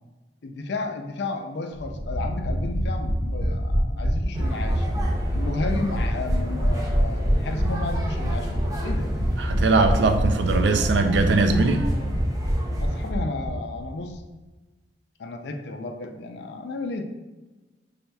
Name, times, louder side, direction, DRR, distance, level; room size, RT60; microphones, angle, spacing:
voice 1, 0.4-4.9 5.3-9.1 12.8-14.2 15.2-17.0, left 3 dB, 70° left, 5 dB, 0.4 m, -33 dB
sound 1, 1.8-13.5 13.8-13.9 14.1-14.2, equal, 50° right, 1.4 m, -25 dB
sound 2, 4.3-13.1, right 1 dB, 20° right, 0.5 m, -35 dB
voice 2, 9.4-11.9, right 3 dB, 80° right, 6 dB, 0.4 m, -21 dB
5.4 x 3.4 x 2.2 m, 1.2 s
head